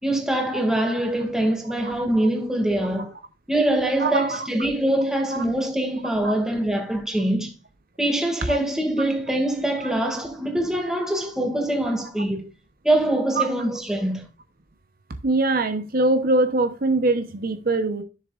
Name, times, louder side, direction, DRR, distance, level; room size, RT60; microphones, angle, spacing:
voice 1, 0.0-3.1 3.5-7.5 8.0-12.5 12.8-14.2, right 1 dB, 5° right, 2.1 m, -24 dB
voice 2, 4.0-4.5 5.3-5.4 6.2-6.3 8.5-8.6 13.4-13.5 15.2-18.0, right 2 dB, 50° right, 0.9 m, -22 dB
11.0 x 6.9 x 2.5 m
head